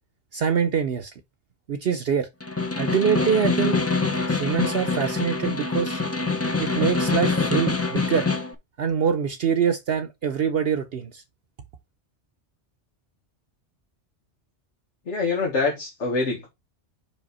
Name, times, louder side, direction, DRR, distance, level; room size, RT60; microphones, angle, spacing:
voice 1, 0.3-1.1 1.7-2.3 2.8-3.8 4.2-6.0 6.6-8.3 8.8-11.2, right 7 dB, 60° right, 0.9 m, -24 dB
Snare drum, 2.4-8.5, left 3 dB, 15° left, 0.6 m, -25 dB
voice 2, 15.1-16.5, left 3 dB, 85° left, 2.0 m, -25 dB
5.4 x 5.1 x 4.1 m
omnidirectional pair, 1.2 m